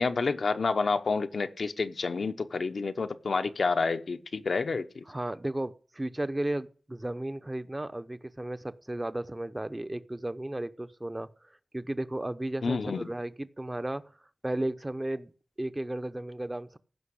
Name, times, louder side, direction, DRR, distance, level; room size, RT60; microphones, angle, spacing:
voice 1, 0.0-5.0 12.6-13.1, left 4 dB, 70° left, 1.0 m, -29 dB
voice 2, 5.1-14.1 14.4-15.3 15.6-16.8, right 1 dB, 20° right, 0.8 m, -34 dB
15.5 x 5.7 x 9.9 m
wide cardioid pair, 75°, 0 cm